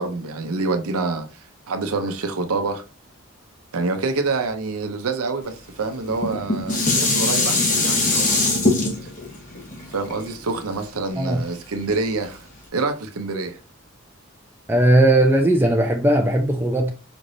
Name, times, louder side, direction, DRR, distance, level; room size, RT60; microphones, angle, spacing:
voice 1, 0.0-2.8 3.7-8.5 9.0-9.1 9.9-12.5 12.7-13.6, right 3 dB, 85° right, 0.7 m, -27 dB
Dishes pots and pans, 6.1-11.4 11.9-12.0, left 2 dB, 35° left, 1.0 m, -22 dB
voice 2, 14.7-16.9, right 1 dB, 10° right, 0.5 m, -17 dB
5.1 x 3.2 x 2.6 m
head